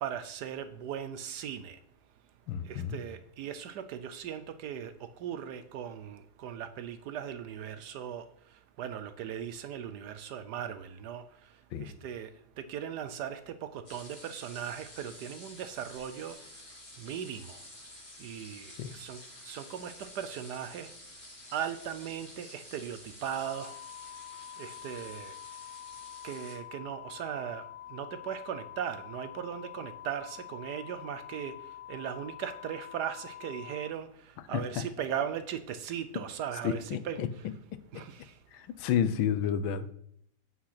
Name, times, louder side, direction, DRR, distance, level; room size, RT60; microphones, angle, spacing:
voice 1, 0.0-1.8 2.7-4.9 5.2-8.2 8.8-11.2 11.8-12.3 12.6-16.4 17.0-17.6 18.2-20.9 21.5-23.7 24.6-25.3 26.2-27.6 27.9-31.6 31.9-34.1 34.5-37.2 37.9-38.3, right 9 dB, 70° right, 11 dB, 1.1 m, -38 dB
voice 2, 2.5-3.0 11.7-11.9 18.8-18.9 34.5-34.9 36.6-37.3 37.9-38.0 38.5-39.9, left 8 dB, 90° left, 13 dB, 1.5 m, -31 dB
sound 1, 13.8-26.5, left 1 dB, 15° left, 3.7 m, -50 dB
sound 2, 23.2-33.9, left 13 dB, 65° left, 1.3 m, -46 dB
8.6 x 5.6 x 5.8 m, 0.68 s
omnidirectional pair, 2.1 m